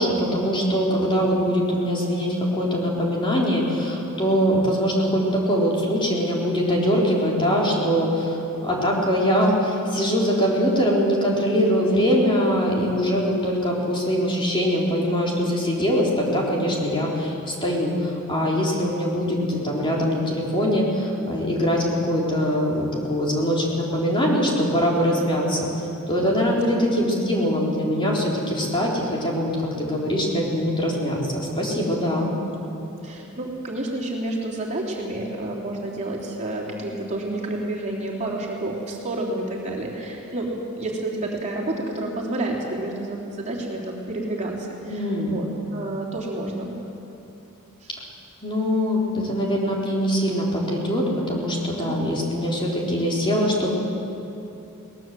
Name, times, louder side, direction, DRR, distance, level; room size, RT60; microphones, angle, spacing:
voice 1, 0.0-25.7 26.1-29.5 29.8-32.3 44.9-45.4 48.4-53.7, equal, 25° left, -3 dB, 3.9 m, -22 dB
voice 2, 33.0-40.5 40.8-45.5 45.7-46.7 47.8-47.9 51.8-52.0, right 2 dB, 35° right, -3 dB, 3.3 m, -30 dB
21.5 x 19.0 x 7.6 m, 2.8 s
head